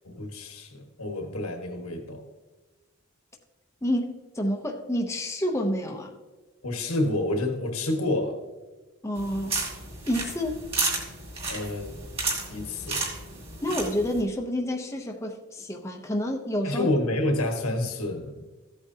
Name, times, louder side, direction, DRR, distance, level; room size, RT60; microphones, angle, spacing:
voice 1, 0.0-2.3 6.6-8.4 11.4-12.0 12.5-13.1 16.6-18.4, left 1 dB, 85° left, 4 dB, 1.5 m, -29 dB
voice 2, 3.8-6.1 9.0-9.6 10.1-10.6 13.6-16.9, equal, 15° left, 1 dB, 0.7 m, -29 dB
sound 1, 9.2-14.2, right 3 dB, 25° right, 2.3 m, -32 dB
15.0 x 8.3 x 2.8 m, 1.3 s
head